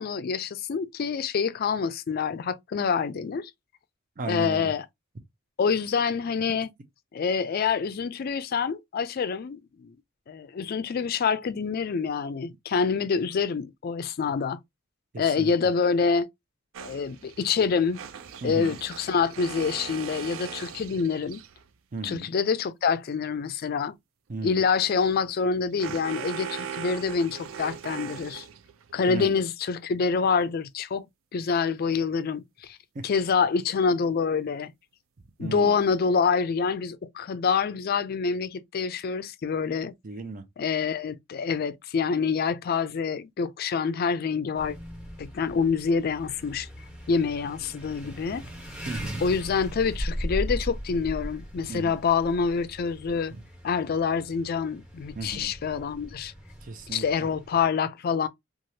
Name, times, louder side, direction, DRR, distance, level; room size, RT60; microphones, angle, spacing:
voice 1, 0.0-3.5 4.3-4.9 5.6-6.7 7.1-10.0 10.3-14.6 15.2-16.3 16.8-18.0 18.4-21.4 22.0-23.9 24.4-28.4 28.9-31.1 31.3-32.8 33.0-34.7 35.4-39.9 40.6-44.8 45.2-46.7 47.1-48.4 49.2-53.3 53.6-56.3 56.9-58.3, left 5 dB, 50° left, 0.4 m, -26 dB
voice 2, 4.2-4.7 15.1-15.5 18.4-18.7 21.9-22.3 24.3-24.6 29.1-29.3 32.9-33.0 35.4-35.8 40.0-40.4 48.9-49.2 51.7-51.9 53.3-53.4 55.1-55.5 56.6-57.0, right 3 dB, 40° right, 0.6 m, -35 dB
sound 1, 16.7-21.7 24.7-28.9, right 7 dB, 85° right, 0.4 m, -40 dB
sound 2, 44.5-57.6, equal, 5° right, 1.2 m, -38 dB
3.1 x 2.4 x 2.7 m
head